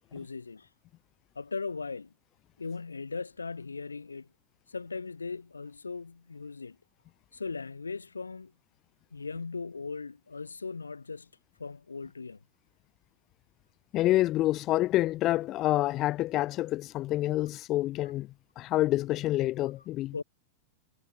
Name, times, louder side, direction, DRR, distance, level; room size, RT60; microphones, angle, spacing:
voice 1, 0.1-0.7 1.3-2.1 2.6-4.3 4.7-6.8 7.3-8.5 9.1-11.3 11.6-12.4 20.1-20.2, left 4 dB, 75° left, 1.5 m, -38 dB
voice 2, 13.9-18.3 18.6-20.1, left 16 dB, 35° left, 0.5 m, -27 dB
figure-of-eight pair, 95°, 0 cm